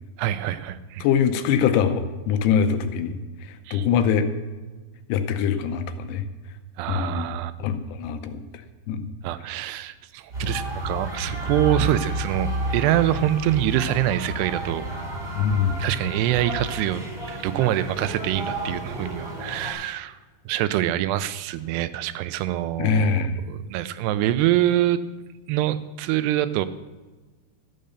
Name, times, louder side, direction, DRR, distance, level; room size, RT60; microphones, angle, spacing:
voice 1, 0.2-1.1 3.7-3.9 6.8-7.5 9.2-14.8 15.8-17.0 17.3-20.2 20.5-25.0 25.5-26.7, right 13 dB, 85° right, 13 dB, 2.7 m, -25 dB
voice 2, 1.0-3.2 3.7-4.3 5.1-6.2 6.9-7.3 7.6-8.4 8.9-9.1 15.4-15.8 22.8-23.4, left 7 dB, 85° left, 9 dB, 2.9 m, -23 dB
sound 1, 10.3-19.7, right 1 dB, 15° right, 1.8 m, -31 dB
12.5 x 9.0 x 6.6 m, 1.2 s
omnidirectional pair, 4.8 m